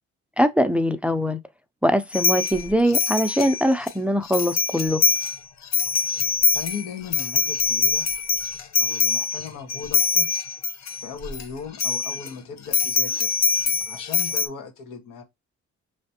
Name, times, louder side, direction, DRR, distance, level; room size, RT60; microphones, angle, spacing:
voice 1, 0.4-1.4 1.8-5.0, equal, 5° right, 0.5 m, -22 dB
sound 1, 2.1-3.9 4.3-5.4 5.6-11.4 11.7-12.3 12.7-14.5, left 5 dB, 65° left, 0.9 m, -23 dB
voice 2, 6.5-8.1 8.8-10.3 11.0-13.3 13.8-15.2, left 6 dB, 90° left, 1.7 m, -37 dB
4.9 x 3.3 x 2.8 m
cardioid pair, 90°, 30 cm